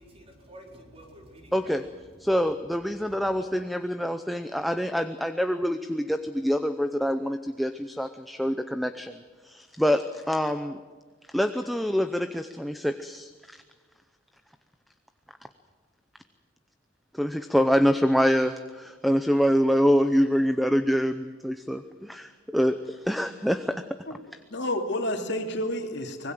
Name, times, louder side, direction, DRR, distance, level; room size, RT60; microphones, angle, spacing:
voice 1, 0.0-2.0 3.0-3.5, right 1 dB, 30° right, 1 dB, 4.5 m, -49 dB
voice 2, 1.5-1.8 2.2-10.8 11.3-13.6 17.1-23.8, equal, ahead, 9 dB, 0.7 m, -25 dB
voice 3, 24.1-26.3, left 1 dB, 60° left, 4 dB, 2.8 m, -30 dB
25.0 x 20.0 x 7.8 m, 1.4 s
head